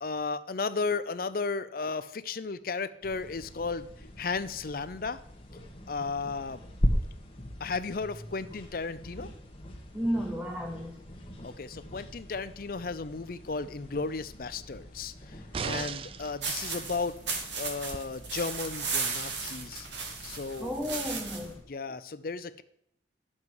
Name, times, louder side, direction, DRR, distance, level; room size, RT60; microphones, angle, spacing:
voice 1, 0.0-5.2 5.9-6.6 7.6-9.3 11.4-17.2 17.6-19.9 20.2-20.7 21.7-22.6, left 4 dB, 50° left, 13 dB, 0.6 m, -34 dB
sound 1, 3.0-21.6, equal, 30° left, 1.5 m, -40 dB
voice 2, 9.9-11.0 20.6-21.6, equal, 10° right, 3 dB, 0.8 m, -32 dB
sound 2, 15.5-16.4 17.9-18.0, right 6 dB, 30° right, 0.3 m, -35 dB
sound 3, 16.4-21.5, right 4 dB, 80° right, 1.8 m, -35 dB
11.0 x 7.3 x 4.8 m, 0.74 s
head